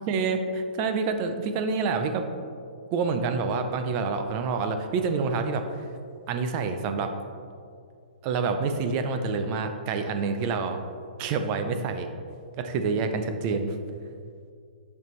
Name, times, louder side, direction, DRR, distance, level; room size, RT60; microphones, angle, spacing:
voice 1, 0.0-2.3 2.9-5.6 6.3-7.1 8.2-10.8 11.2-12.1 12.6-13.8, right 4 dB, 20° right, 7 dB, 0.4 m, -27 dB
9.3 x 5.2 x 3.0 m, 2.3 s
hypercardioid pair, 170°, 5 cm